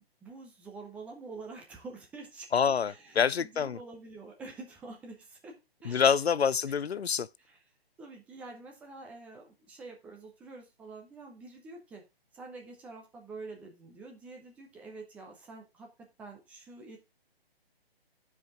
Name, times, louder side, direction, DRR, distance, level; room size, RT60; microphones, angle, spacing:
voice 1, 0.0-6.1 7.4-7.6 8.0-12.0 12.3-17.0, right 3 dB, 5° right, 0.6 m, -47 dB
voice 2, 2.5-3.8 5.8-7.3, left 7 dB, 90° left, 0.5 m, -26 dB
11.0 x 4.8 x 3.5 m
figure-of-eight pair, 135°, 31 cm